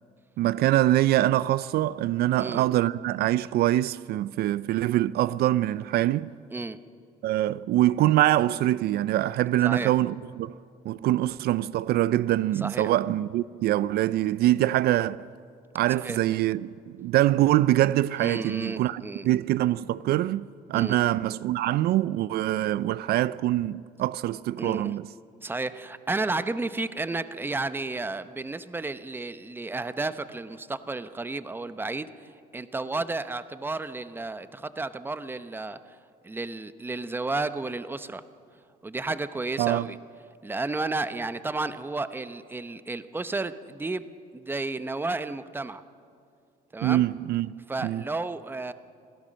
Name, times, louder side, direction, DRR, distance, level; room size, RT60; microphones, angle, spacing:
voice 1, 0.4-6.3 7.2-10.6 10.8-15.2 15.7-25.1 39.6-39.9 46.8-47.5 47.8-48.0, right 14 dB, 70° right, 0.4 m, -24 dB
voice 2, 9.6-9.9 12.6-12.9 16.0-16.2 18.2-19.2 20.7-21.0 24.6-25.0 25.4-36.0 36.2-38.2 38.8-40.0 40.4-44.1 44.3-45.8 46.7-47.0 47.7-48.7, right 3 dB, 10° right, 0.7 m, -32 dB
26.5 x 16.5 x 6.4 m
cardioid pair, 110°, 17 cm